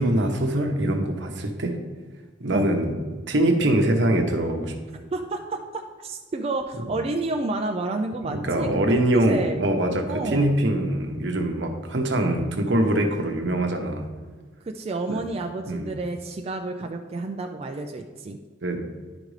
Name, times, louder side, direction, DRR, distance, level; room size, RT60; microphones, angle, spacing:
voice 1, 0.0-1.8 2.4-4.7 8.2-14.1 15.7-15.9 18.6-18.9, right 1 dB, 75° right, 4 dB, 0.9 m, -23 dB
voice 2, 5.1-9.6 10.1-10.6 14.6-18.4, right 2 dB, 35° right, 3 dB, 0.4 m, -30 dB
10.5 x 5.1 x 3.2 m, 1.4 s
head